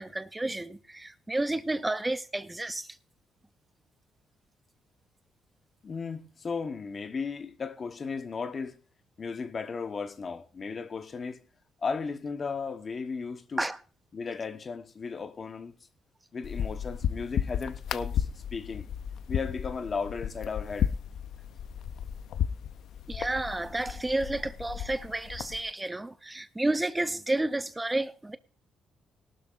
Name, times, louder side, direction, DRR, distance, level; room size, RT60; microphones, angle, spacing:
voice 1, 0.0-2.9 13.6-13.8 23.1-28.4, right 2 dB, 15° right, 0.5 m, -31 dB
voice 2, 5.8-8.8 9.2-11.4 11.8-13.6 14.1-15.7 16.3-18.9 19.3-20.9, left 5 dB, 40° left, 1.2 m, -35 dB
sound 1, 16.4-25.6, left 9 dB, 70° left, 0.5 m, -34 dB
18.5 x 12.0 x 2.5 m
cardioid pair, 90°, 0 cm